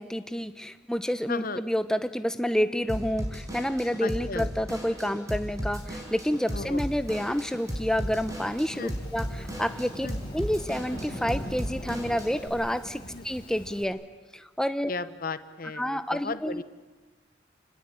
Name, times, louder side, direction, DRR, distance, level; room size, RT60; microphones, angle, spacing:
voice 1, 0.0-10.1 10.3-14.0 14.3-14.9 15.7-16.6, equal, 5° left, 11 dB, 1.0 m, -29 dB
voice 2, 1.3-1.6 4.0-4.5 6.5-6.8 8.8-8.9 10.0-10.2 13.1-13.2 14.9-16.6, left 3 dB, 50° left, 13 dB, 1.0 m, -35 dB
Drum kit / Drum, 2.9-12.5, equal, 20° right, 4.9 m, -36 dB
Thunderstorm / Rain, 6.1-13.8, equal, 25° left, 4.2 m, -43 dB
29.0 x 20.0 x 8.8 m, 1.3 s
head